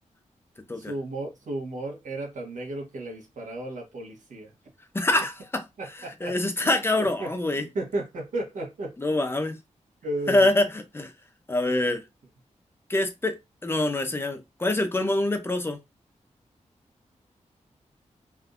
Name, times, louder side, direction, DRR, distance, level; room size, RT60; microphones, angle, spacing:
voice 1, 0.7-4.5 5.8-6.4 6.6-7.3 7.7-8.9 10.0-10.6 11.7-11.9, right 2 dB, 85° right, 1.2 m, -34 dB
voice 2, 4.9-5.6 6.2-7.7 9.0-9.6 10.3-11.1 11.5-12.0 12.9-15.8, left 2 dB, 20° left, 0.5 m, -25 dB
3.5 x 2.6 x 2.4 m
wide cardioid pair, 160°, 13 cm